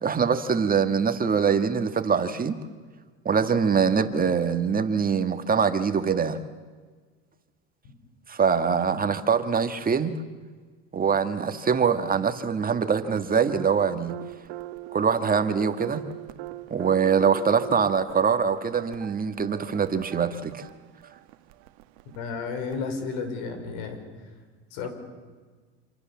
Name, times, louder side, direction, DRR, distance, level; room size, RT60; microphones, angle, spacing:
voice 1, 0.0-2.6 3.3-6.4 8.3-10.1 10.9-14.1 14.9-16.0 16.7-20.7, right 6 dB, 25° right, 8 dB, 1.7 m, -23 dB
sound 1, 13.0-22.8, right 17 dB, 75° right, 1.4 m, -41 dB
voice 2, 22.2-24.0 24.7-24.9, left 5 dB, 70° left, 7 dB, 5.6 m, -32 dB
27.0 x 26.0 x 7.3 m, 1.5 s
supercardioid pair, 95°, 34 cm